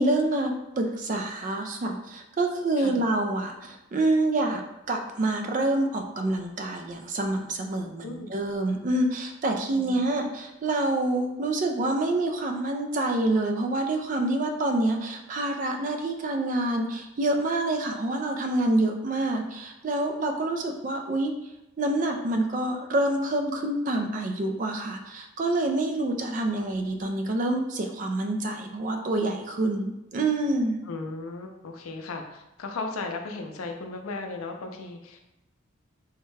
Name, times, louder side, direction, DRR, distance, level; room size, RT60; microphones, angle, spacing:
voice 1, 0.0-4.6 4.9-21.3 21.8-30.8, right 2 dB, 40° right, 4 dB, 0.3 m, -27 dB
voice 2, 9.7-10.0 30.8-35.2, left 3 dB, 90° left, 4 dB, 0.5 m, -36 dB
3.5 x 2.1 x 3.2 m, 0.92 s
head